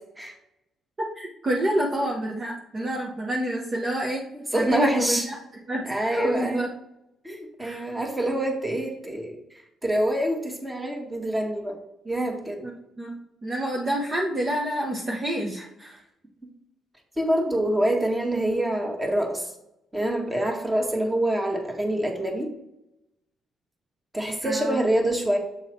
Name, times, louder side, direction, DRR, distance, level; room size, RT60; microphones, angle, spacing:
voice 1, 1.1-4.3 4.5-5.4 5.7-6.7 7.6-7.9 12.6-12.7 13.0-16.0 24.4-24.8, right 1 dB, 35° right, -2 dB, 1.0 m, -28 dB
voice 2, 4.3-5.3 5.9-6.6 7.2-9.4 9.8-11.7 12.0-12.6 17.2-19.5 19.9-22.5 24.1-25.4, right 1 dB, 15° right, 1 dB, 1.7 m, -26 dB
7.3 x 3.9 x 4.4 m, 0.85 s
cardioid pair, 90°, 0 cm